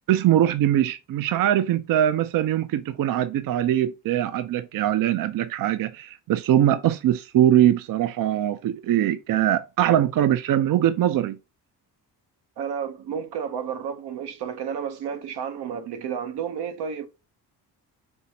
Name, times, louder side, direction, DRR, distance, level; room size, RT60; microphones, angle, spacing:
voice 1, 0.1-11.4, right 11 dB, 60° right, 0.5 m, -22 dB
voice 2, 12.6-17.1, right 7 dB, 85° right, 0.9 m, -31 dB
5.4 x 3.1 x 2.8 m
cardioid pair, 85°, 39 cm